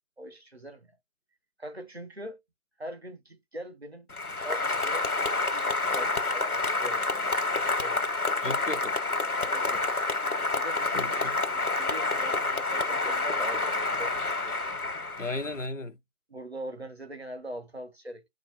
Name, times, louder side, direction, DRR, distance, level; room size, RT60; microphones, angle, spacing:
voice 1, 0.2-0.9 1.6-2.4 2.8-4.1 4.4-8.3 9.5-10.0 10.6-14.6 16.3-18.3, right 1 dB, 45° right, 0.9 m, -42 dB
Applause, 4.1-15.6, left 3 dB, 80° left, 1.3 m, -28 dB
voice 2, 8.4-9.0 9.9-10.2 10.9-11.4 15.2-16.0, left 2 dB, 60° left, 0.8 m, -36 dB
4.8 x 2.5 x 4.1 m
figure-of-eight pair, 175°, 44 cm